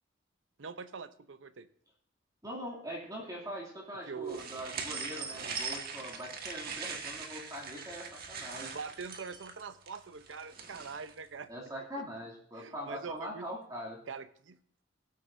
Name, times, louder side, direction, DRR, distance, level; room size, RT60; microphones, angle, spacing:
voice 1, 0.6-1.7 4.1-4.4 8.7-11.5 12.6-13.5 14.1-14.6, right 5 dB, 80° right, 12 dB, 0.7 m, -43 dB
voice 2, 2.4-8.7 11.5-14.0, equal, 20° right, -4 dB, 2.6 m, -42 dB
sound 1, 4.3-11.1, right 5 dB, 50° right, 1.5 m, -41 dB
18.0 x 8.4 x 2.6 m, 0.63 s
head